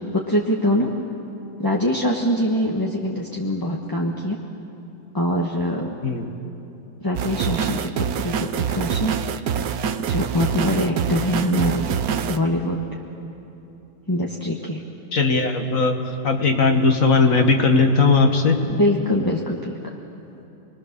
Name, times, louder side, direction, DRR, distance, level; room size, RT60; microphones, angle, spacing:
voice 1, 0.1-0.9 1.6-4.4 5.1-5.9 7.0-9.1 10.1-11.9 12.3-12.8 14.1-14.8 18.8-19.9, left 1 dB, 15° left, -2 dB, 1.2 m, -23 dB
sound 1, 7.1-12.4, right 8 dB, 60° right, 1.1 m, -25 dB
voice 2, 15.1-18.6, left 4 dB, 45° left, 4 dB, 2.1 m, -18 dB
30.0 x 21.5 x 6.8 m, 3.0 s
omnidirectional pair, 2.1 m